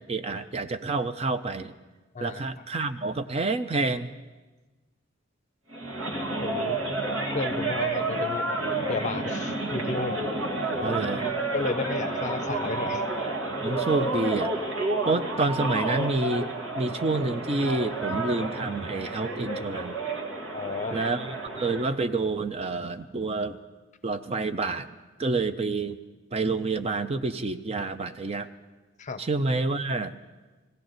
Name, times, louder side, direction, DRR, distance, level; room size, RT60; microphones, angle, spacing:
voice 1, 0.0-1.7 2.2-4.1 10.8-11.3 13.6-14.5 15.0-20.0 20.9-21.3 21.5-23.6 24.0-24.9 25.2-26.0 26.3-28.5 29.2-30.2, right 3 dB, 30° right, 10 dB, 0.5 m, -28 dB
voice 2, 2.1-2.7 6.4-6.8 7.3-8.5 8.9-10.2 10.7-10.8 11.5-13.2 20.5-21.0 29.0-29.2, left 3 dB, 40° left, 11 dB, 0.6 m, -33 dB
sound 1, 5.7-21.9, right 2 dB, 80° right, 2.0 m, -30 dB
20.0 x 16.0 x 4.0 m, 1.2 s
head